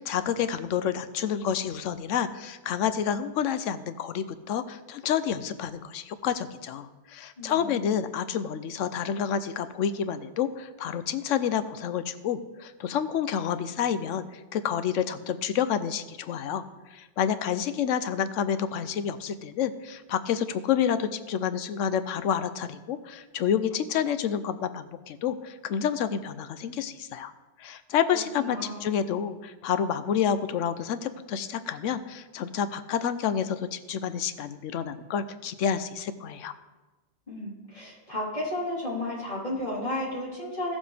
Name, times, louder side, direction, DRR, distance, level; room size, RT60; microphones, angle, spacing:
voice 1, 0.0-16.6 16.9-27.3 27.6-36.5, left 8 dB, 90° left, 11 dB, 1.0 m, -29 dB
voice 2, 7.4-7.9 28.1-29.0 37.3-40.8, left 1 dB, 35° left, -9 dB, 4.1 m, -33 dB
15.5 x 7.2 x 3.4 m, 1.2 s
omnidirectional pair, 1.2 m